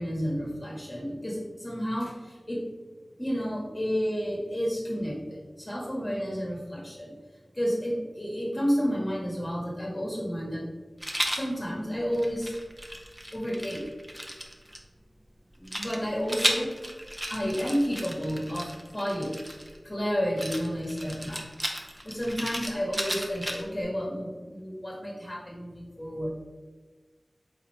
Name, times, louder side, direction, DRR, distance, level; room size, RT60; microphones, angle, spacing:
voice 1, 0.0-2.1 2.5-2.6 3.2-7.1 7.5-10.6 11.3-12.5 13.3-13.9 15.6-16.7 17.3-18.7 18.9-19.3 19.8-21.4 22.0-26.3, equal, 25° left, -3 dB, 1.2 m, -31 dB
Rattle, 11.0-11.5 12.1-14.8 15.7-19.8 20.4-23.8, equal, 15° right, 0.6 m, -34 dB
4.1 x 3.7 x 3.2 m, 1.3 s
wide cardioid pair, 65°, 0 cm